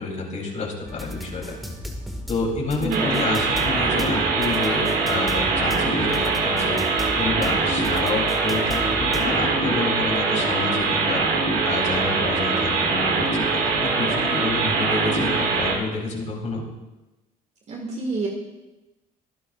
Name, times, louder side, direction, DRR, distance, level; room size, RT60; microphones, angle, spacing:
voice 1, 0.0-1.6 2.3-6.8 7.2-11.2 11.6-16.6, left 3 dB, 45° left, 0 dB, 3.4 m, -29 dB
sound 1, 0.9-9.5, left 1 dB, ahead, 1.9 m, -36 dB
voice 2, 2.8-3.2 17.7-18.3, right 2 dB, 40° right, 0 dB, 2.0 m, -28 dB
sound 2, 2.9-15.7, right 4 dB, 85° right, 3.5 m, -23 dB
23.5 x 10.0 x 2.5 m, 1.0 s
cardioid pair, 110°, 17 cm